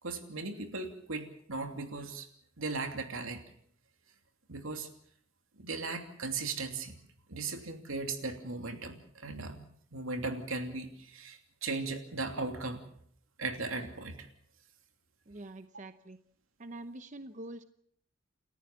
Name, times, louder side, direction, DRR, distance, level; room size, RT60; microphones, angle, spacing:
voice 1, 0.0-2.3 2.6-3.4 4.5-4.9 5.6-7.0 7.3-12.8 13.4-14.3, right 3 dB, 85° right, 5 dB, 2.9 m, -37 dB
voice 2, 15.3-16.2 16.6-17.6, right 2 dB, 35° right, 10 dB, 0.8 m, -45 dB
29.5 x 14.0 x 7.2 m, 0.67 s
head